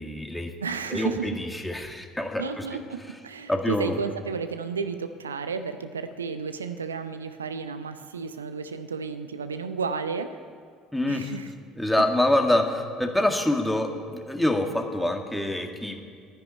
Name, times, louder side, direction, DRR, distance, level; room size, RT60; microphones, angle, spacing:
voice 1, 0.0-0.5 0.9-2.7 3.5-4.0 10.9-11.3 11.8-16.0, left 1 dB, 5° left, 4 dB, 1.9 m, -26 dB
voice 2, 0.6-1.3 2.4-10.4 11.1-11.5 12.0-12.1, right 5 dB, 80° right, 10 dB, 0.6 m, -32 dB
11.5 x 10.5 x 9.6 m, 2.1 s
figure-of-eight pair, 60°, 0 cm